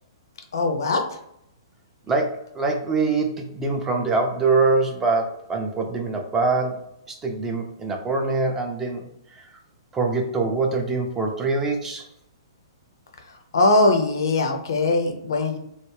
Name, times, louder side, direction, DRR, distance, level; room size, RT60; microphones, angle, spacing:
voice 1, 0.5-1.0 13.5-15.6, left 2 dB, 60° left, 5 dB, 0.5 m, -20 dB
voice 2, 2.1-9.0 9.3-9.5 9.9-12.1, right 3 dB, 15° right, 2 dB, 0.4 m, -24 dB
2.3 x 2.1 x 3.2 m, 0.76 s
figure-of-eight pair, 115°, 2 cm